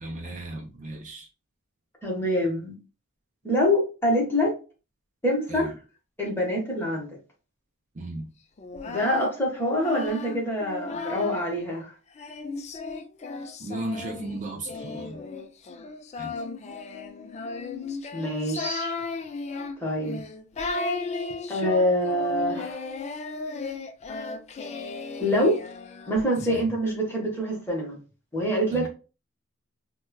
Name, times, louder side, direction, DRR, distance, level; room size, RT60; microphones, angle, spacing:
voice 1, 0.0-1.3 5.5-5.7 7.9-8.3 13.6-15.2 16.2-16.3 26.5-26.6 28.7-28.9, right 1 dB, 35° right, 0.5 m, -35 dB
voice 2, 2.0-2.7 3.4-4.5 5.2-5.7 6.2-7.2 8.9-11.9 18.1-18.9 19.8-20.2 21.5-22.8 25.2-25.6 26.1-28.0 28.3-28.9, equal, 10° left, 1.1 m, -25 dB
Singing, 8.6-11.6 12.2-26.6, left 3 dB, 35° left, 0.4 m, -35 dB
4.1 x 2.2 x 2.2 m
head